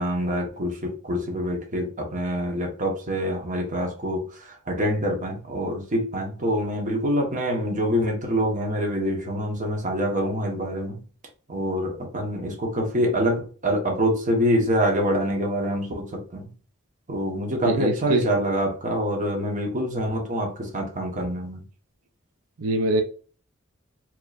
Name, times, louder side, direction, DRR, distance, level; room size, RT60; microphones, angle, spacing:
voice 1, 0.0-11.0 11.5-16.5 17.1-21.6, equal, 40° right, 1.1 m, -25 dB
voice 2, 17.7-18.2 22.6-23.0, right 2 dB, 85° right, 0.5 m, -23 dB
4.5 x 3.0 x 2.5 m
head